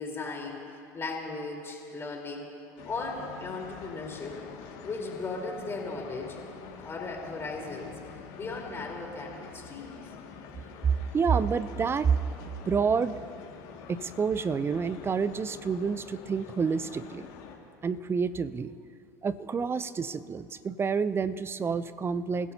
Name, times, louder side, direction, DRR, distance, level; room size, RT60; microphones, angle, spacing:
voice 1, 0.0-2.5 2.9-4.4 4.8-6.4 6.8-8.0 8.4-10.1, left 3 dB, 25° left, -1 dB, 4.1 m, -37 dB
sound 1, 2.8-17.6, left 6 dB, 60° left, 2.2 m, -46 dB
voice 2, 10.8-12.2 12.7-13.2 13.9-17.3 17.8-18.7 19.2-22.5, right 6 dB, 25° right, 15 dB, 0.6 m, -28 dB
28.5 x 16.0 x 2.9 m, 2.6 s
hypercardioid pair, 75°, 9 cm